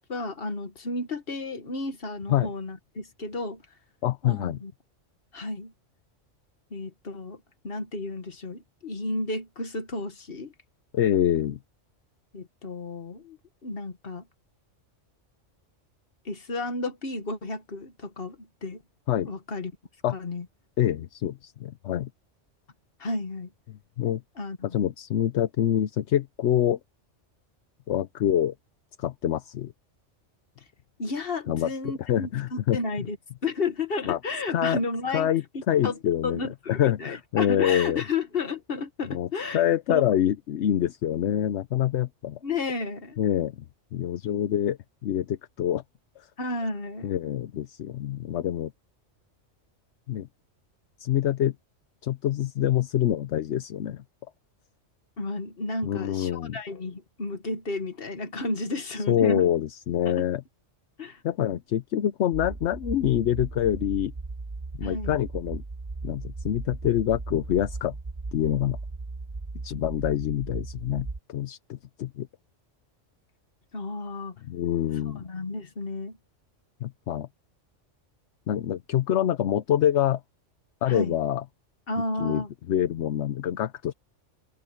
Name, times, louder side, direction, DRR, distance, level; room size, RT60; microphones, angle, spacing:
voice 1, 0.1-3.6 4.2-4.7 5.3-5.7 6.7-10.5 12.3-14.2 16.3-18.8 19.2-19.7 20.1-20.5 23.0-23.5 24.4-24.8 31.0-33.2 33.4-35.3 35.8-36.0 36.2-39.6 39.9-40.0 42.4-43.2 46.4-47.1 55.2-59.5 60.1-60.3 61.0-61.2 64.8-65.2 73.7-74.4 75.2-76.2 80.9-81.2 81.9-82.5, left 3 dB, 50° left, 1.8 m, -32 dB
voice 2, 4.0-4.6 10.9-11.6 19.1-19.3 20.0-20.2 20.8-22.1 23.7-24.2 24.6-26.8 27.9-28.5 29.0-29.7 31.5-32.8 34.1-34.2 34.5-34.8 35.1-38.0 39.1-39.3 39.5-42.4 43.2-43.6 43.9-45.8 46.2-46.3 47.0-48.7 50.1-50.3 51.0-51.6 52.0-54.0 55.8-56.6 59.1-60.4 61.2-64.1 64.7-65.6 66.0-68.0 68.3-68.8 69.6-72.3 74.4-75.2 76.8-77.3 78.5-80.2 80.8-81.4 82.2-83.9, left 11 dB, 70° left, 1.0 m, -26 dB
sound 1, 62.3-71.2, right 3 dB, 20° right, 0.7 m, -37 dB
omnidirectional pair, 1.3 m